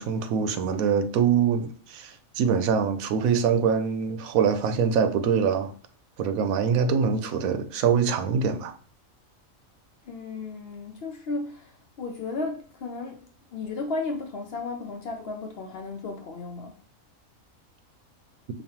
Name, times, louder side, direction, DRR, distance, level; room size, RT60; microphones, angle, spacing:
voice 1, 0.0-5.7 6.2-8.7, right 6 dB, 90° right, 1.0 m, -24 dB
voice 2, 10.0-16.8, left 3 dB, 60° left, 0.7 m, -34 dB
5.2 x 2.3 x 2.8 m
omnidirectional pair, 1.4 m